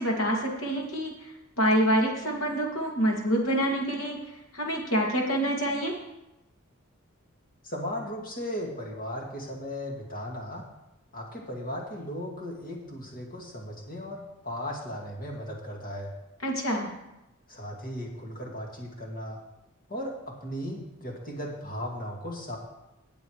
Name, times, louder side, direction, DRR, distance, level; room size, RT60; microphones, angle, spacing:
voice 1, 0.0-4.2 4.5-5.9 16.4-16.9, equal, 70° left, -1 dB, 2.3 m, -26 dB
voice 2, 7.6-10.6 11.1-16.1 17.5-19.4 19.9-22.6, equal, 45° left, -1 dB, 2.2 m, -36 dB
18.5 x 7.0 x 3.2 m, 0.93 s
head